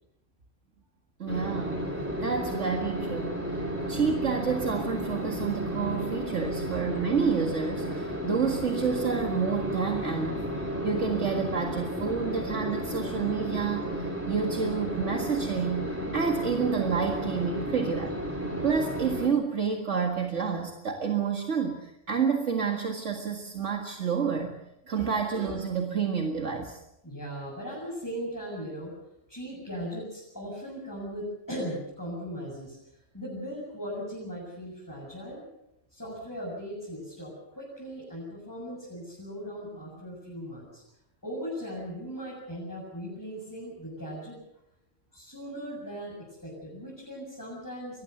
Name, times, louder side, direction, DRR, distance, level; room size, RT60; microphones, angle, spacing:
voice 1, 1.2-1.9 2.2-10.5 10.8-13.8 14.3-18.2 18.6-24.6 24.9-26.8, right 6 dB, 70° right, 2 dB, 2.2 m, -29 dB
sound 1, 1.3-19.3, equal, 10° right, 4.2 m, -33 dB
voice 2, 27.0-28.9 29.3-32.8 33.1-35.4 35.9-40.8 41.2-44.4 45.1-48.0, equal, 15° left, -5 dB, 7.6 m, -38 dB
23.5 x 19.0 x 6.8 m, 0.85 s
omnidirectional pair, 1.3 m